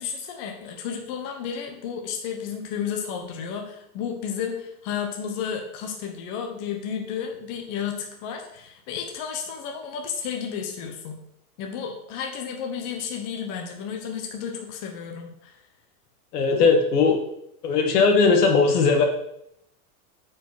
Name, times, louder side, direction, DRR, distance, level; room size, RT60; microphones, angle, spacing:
voice 1, 0.0-11.2 11.6-15.6, left 7 dB, 40° left, 3 dB, 1.2 m, -32 dB
voice 2, 16.3-17.2 17.6-19.0, left 4 dB, 85° left, 3 dB, 2.0 m, -18 dB
8.9 x 5.2 x 4.1 m, 0.76 s
supercardioid pair, 150°, 45 cm